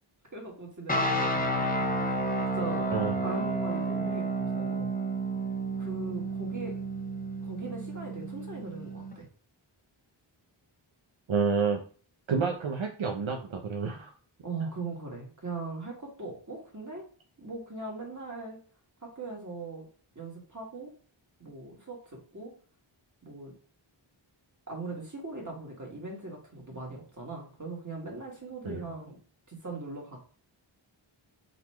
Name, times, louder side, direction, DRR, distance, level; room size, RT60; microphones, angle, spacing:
voice 1, 0.3-2.9 3.2-4.9 5.8-6.8 7.4-9.2 14.4-17.1 17.4-18.6 19.0-19.9 20.2-20.9 21.4-22.5 23.2-23.5 24.7-29.2 29.5-30.2, right 3 dB, 35° right, -1 dB, 2.0 m, -40 dB
sound 1, 0.9-9.1, right 2 dB, 15° left, 0.9 m, -31 dB
voice 2, 11.3-11.8 12.3-14.1 28.6-28.9, right 5 dB, 70° right, 2 dB, 0.7 m, -29 dB
4.1 x 3.0 x 4.4 m, 0.41 s
wide cardioid pair, 50°, 49 cm